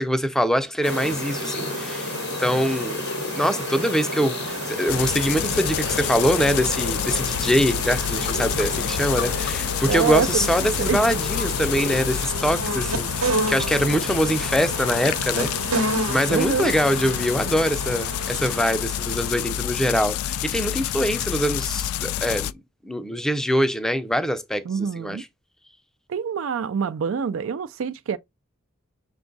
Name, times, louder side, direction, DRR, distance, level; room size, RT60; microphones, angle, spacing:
voice 1, 0.0-2.1 2.4-3.0 3.4-22.5 22.8-25.2, equal, ahead, 0.5 m, -24 dB
sound 1, 0.8-12.3, left 4 dB, 50° left, 0.7 m, -33 dB
sound 2, 0.8-20.3, right 2 dB, 85° right, 1.1 m, -32 dB
sound 3, 4.9-22.5, left 12 dB, 85° left, 0.3 m, -28 dB
voice 2, 9.9-10.5 10.8-11.0 16.3-16.7 24.7-25.2 26.1-28.2, right 6 dB, 65° right, 0.3 m, -25 dB
6.0 x 2.3 x 3.8 m
head